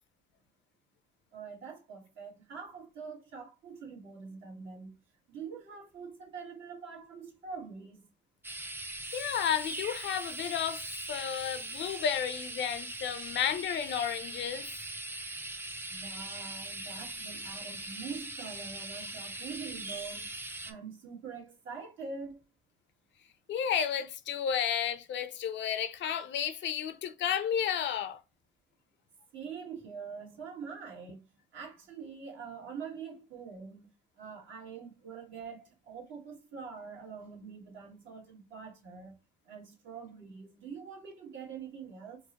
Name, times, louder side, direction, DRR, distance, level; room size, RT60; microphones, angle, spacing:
voice 1, 1.3-5.0 5.3-8.0 15.9-20.3 20.6-22.4 29.3-31.2 31.5-33.9 34.2-39.2 39.4-42.2, right 5 dB, 75° right, 1.5 m, -44 dB
sound 1, 8.4-20.7, right 2 dB, 10° right, 0.4 m, -41 dB
voice 2, 9.1-14.7 23.5-28.2, left 8 dB, 65° left, 0.5 m, -32 dB
4.4 x 2.1 x 2.8 m
cardioid pair, 90°, 20 cm